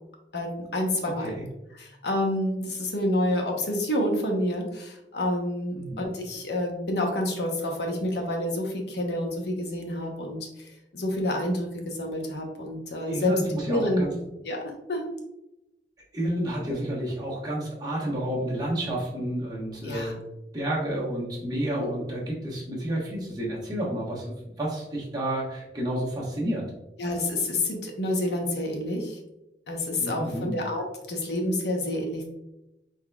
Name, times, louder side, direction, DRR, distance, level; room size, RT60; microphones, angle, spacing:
voice 1, 0.3-1.3 1.8-13.4 13.7-14.1 14.4-15.1 19.8-20.2 21.7-21.9 27.0-29.2 29.7-32.3, left 1 dB, 70° left, 2 dB, 0.8 m, -28 dB
voice 2, 1.0-1.5 5.7-6.1 13.1-14.1 16.1-20.2 20.5-26.7 30.0-30.6, right 1 dB, 20° right, -5 dB, 1.1 m, -30 dB
4.3 x 4.0 x 2.3 m, 0.91 s
head